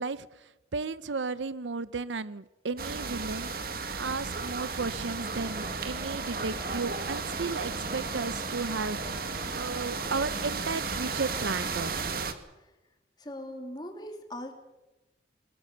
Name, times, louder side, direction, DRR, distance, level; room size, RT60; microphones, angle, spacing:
voice 1, 0.0-9.0 9.5-12.1, right 4 dB, 80° right, 16 dB, 0.7 m, -34 dB
sound 1, 2.8-12.3, right 4 dB, 50° right, 1.8 m, -34 dB
sound 2, 5.2-12.0, equal, 15° right, 6.6 m, -45 dB
voice 2, 13.2-14.5, left 1 dB, 25° left, 4 dB, 3.2 m, -40 dB
23.0 x 21.0 x 6.9 m, 1.0 s
head